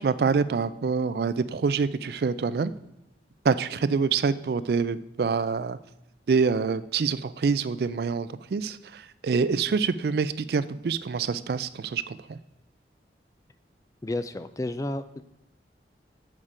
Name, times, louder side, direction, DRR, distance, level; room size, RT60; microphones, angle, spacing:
voice 1, 0.0-2.7 3.5-5.8 6.3-12.4, right 5 dB, 60° right, 15 dB, 0.3 m, -26 dB
voice 2, 14.0-15.2, left 2 dB, 20° left, 12 dB, 0.3 m, -32 dB
7.3 x 6.5 x 4.9 m, 0.91 s
head